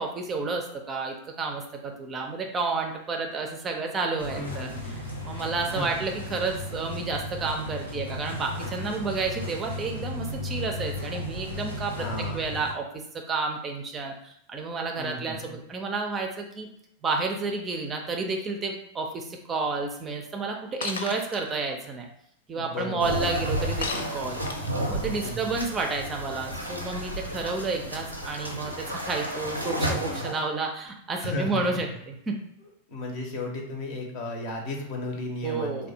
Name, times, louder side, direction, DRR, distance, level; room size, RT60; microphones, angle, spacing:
voice 1, 0.0-4.7 5.2-12.1 12.3-16.7 17.0-22.1 22.5-32.4 35.4-35.9, right 3 dB, 20° right, 2 dB, 0.4 m, -31 dB
sound 1, 4.2-12.7, left 1 dB, 85° left, 0.7 m, -35 dB
voice 2, 4.3-5.2 5.7-6.1 12.0-12.4 15.0-15.6 22.5-23.2 25.2-25.6 31.2-31.8 32.9-35.9, left 2 dB, 45° left, 2 dB, 0.7 m, -34 dB
Shatter, 20.8-21.4 23.8-24.8, left 4 dB, 65° left, 0.3 m, -33 dB
sound 2, 23.0-30.4, equal, 90° right, 0.5 m, -32 dB
3.3 x 2.2 x 2.7 m, 0.72 s
figure-of-eight pair, 90°, 0 cm